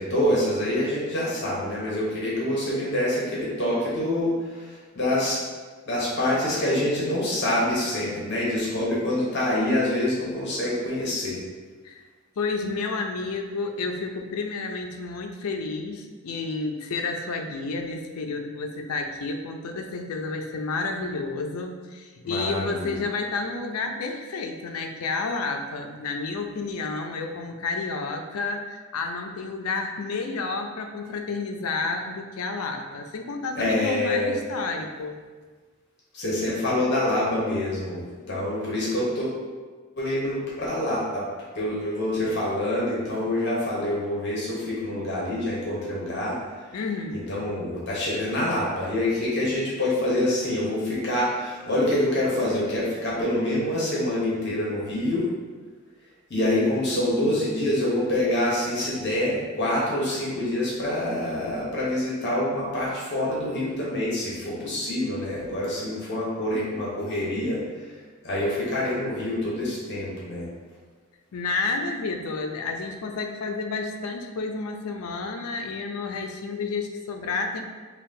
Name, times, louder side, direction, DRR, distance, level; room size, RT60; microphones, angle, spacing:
voice 1, 0.0-5.4 5.9-11.4 22.2-22.9 33.5-34.3 36.1-39.4 40.0-41.2 41.5-46.4 47.3-55.3 56.3-67.9 68.2-70.5, left 1 dB, 50° left, -6 dB, 0.9 m, -26 dB
voice 2, 12.4-35.2 46.7-47.3 71.3-77.6, left 3 dB, 85° left, 4 dB, 0.5 m, -30 dB
5.5 x 2.3 x 2.7 m, 1.4 s
head